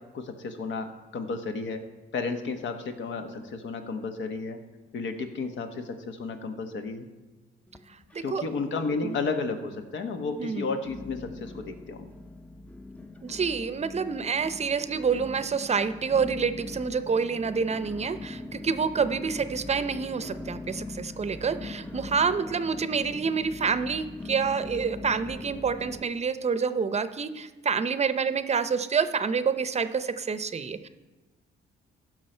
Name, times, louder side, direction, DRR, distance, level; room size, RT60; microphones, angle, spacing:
voice 1, 0.1-0.9 1.1-1.8 2.1-4.6 4.9-7.1 8.2-12.1, left 4 dB, 70° left, 6 dB, 1.2 m, -32 dB
sound 1, 7.7-8.6 8.9-9.5 10.0-10.1 10.8-26.0, left 2 dB, 5° left, 0.6 m, -41 dB
voice 2, 7.9-8.4 9.0-9.2 10.4-10.7 13.2-30.9, right 5 dB, 35° right, 12 dB, 0.6 m, -28 dB
15.5 x 6.3 x 4.4 m, 1.2 s
cardioid pair, 90°, 20 cm